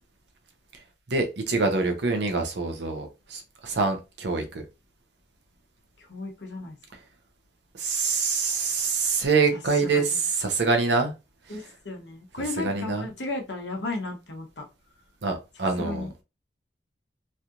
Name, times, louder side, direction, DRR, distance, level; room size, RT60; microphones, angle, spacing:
voice 1, 1.1-4.6 7.8-11.1 12.6-13.0 15.2-16.1, right 4 dB, 80° right, 4 dB, 0.8 m, -25 dB
voice 2, 6.1-6.8 9.9-10.2 11.5-14.6 15.8-16.1, left 2 dB, 85° left, 2 dB, 1.0 m, -34 dB
3.2 x 2.8 x 2.5 m, 0.27 s
head